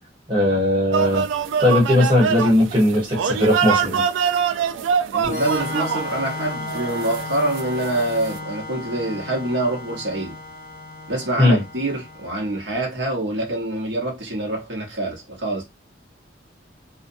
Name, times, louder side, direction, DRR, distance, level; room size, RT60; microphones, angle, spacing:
voice 1, 0.3-1.2 1.6-4.0 11.4-11.6, left 1 dB, 25° right, 1.1 m, -18 dB
sound 1, 0.9-8.4, right 7 dB, 90° right, 0.3 m, -25 dB
voice 2, 5.1-10.4 11.1-15.6, right 1 dB, 70° right, 0.8 m, -25 dB
Organ, 5.2-12.8, left 2 dB, 45° left, 0.9 m, -34 dB
2.6 x 2.1 x 2.6 m
head